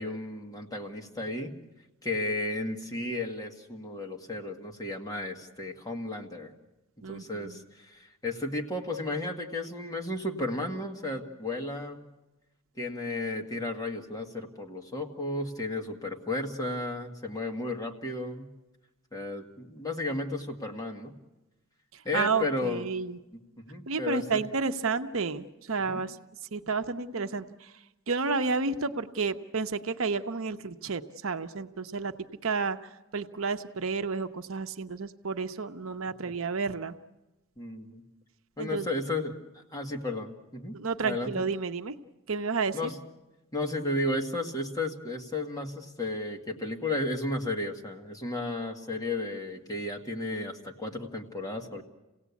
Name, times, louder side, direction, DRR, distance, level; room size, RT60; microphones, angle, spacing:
voice 1, 0.0-1.5 2.0-6.5 7.1-12.1 12.8-18.5 19.1-21.1 22.1-22.8 23.3-24.4 25.9-26.0 37.6-38.0 38.6-40.8 41.0-41.3 42.7-43.0 43.5-51.8, left 2 dB, 15° left, 1 dB, 1.8 m, -33 dB
voice 2, 7.0-7.6 22.1-23.2 23.9-26.2 26.5-27.7 28.1-32.1 32.4-32.8 33.1-36.9 38.6-38.9 40.7-41.9 42.3-42.9, right 4 dB, 70° right, 8 dB, 0.8 m, -31 dB
27.5 x 17.5 x 8.4 m, 1.1 s
head